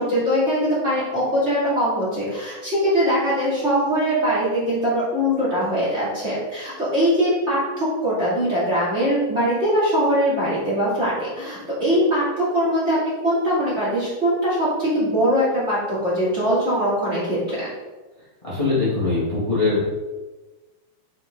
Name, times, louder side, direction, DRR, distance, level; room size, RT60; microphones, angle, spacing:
voice 1, 0.0-17.7, equal, 25° right, -9 dB, 2.6 m, -22 dB
voice 2, 18.4-19.8, left 3 dB, 15° left, -9 dB, 1.6 m, -21 dB
8.5 x 4.7 x 3.8 m, 1.2 s
omnidirectional pair, 3.6 m